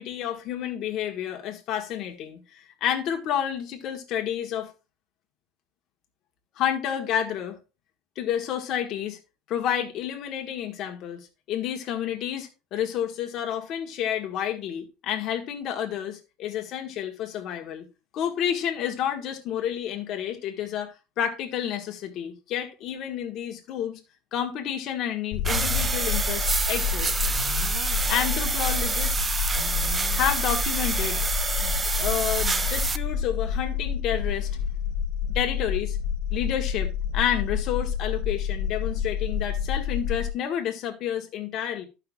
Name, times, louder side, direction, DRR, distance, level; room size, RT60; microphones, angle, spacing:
voice 1, 0.0-4.7 6.6-7.6 8.1-9.2 9.5-17.9 18.1-24.0 24.3-27.1 28.1-29.1 30.1-31.2 31.6-34.6 35.3-36.0 36.3-41.9, left 9 dB, 40° left, 1.5 m, -30 dB
sound 1, 25.3-40.3, left 7 dB, 60° left, 0.9 m, -29 dB
sound 2, 25.4-33.0, right 4 dB, 15° right, 0.3 m, -27 dB
14.0 x 5.8 x 2.4 m
cardioid pair, 175°, 0 cm